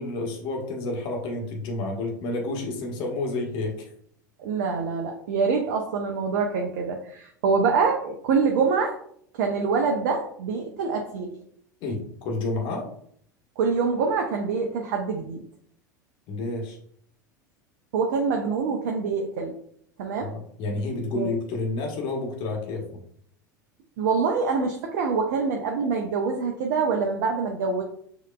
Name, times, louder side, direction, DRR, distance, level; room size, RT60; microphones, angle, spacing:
voice 1, 0.0-3.9 11.8-12.9 16.3-16.8 20.2-23.0, left 2 dB, 50° left, 1 dB, 1.2 m, -30 dB
voice 2, 4.4-9.0 9.3-11.3 13.6-15.4 17.9-19.5 20.0-20.3 21.1-21.3 24.0-27.8, right 5 dB, 60° right, 2 dB, 0.6 m, -25 dB
6.4 x 2.9 x 2.3 m, 0.65 s
figure-of-eight pair, 80°, 10 cm